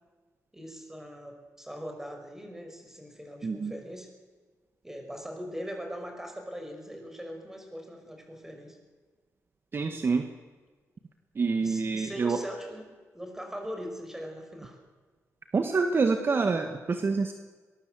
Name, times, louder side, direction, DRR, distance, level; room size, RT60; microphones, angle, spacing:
voice 1, 0.5-4.1 4.8-8.8 9.9-10.2 11.6-12.8 13.1-14.8, equal, 5° right, 4 dB, 5.7 m, -41 dB
voice 2, 9.7-10.3 11.4-12.4 15.5-17.3, right 4 dB, 40° right, 6 dB, 1.6 m, -26 dB
22.5 x 21.5 x 7.8 m, 1.4 s
wide cardioid pair, 120°, 6 cm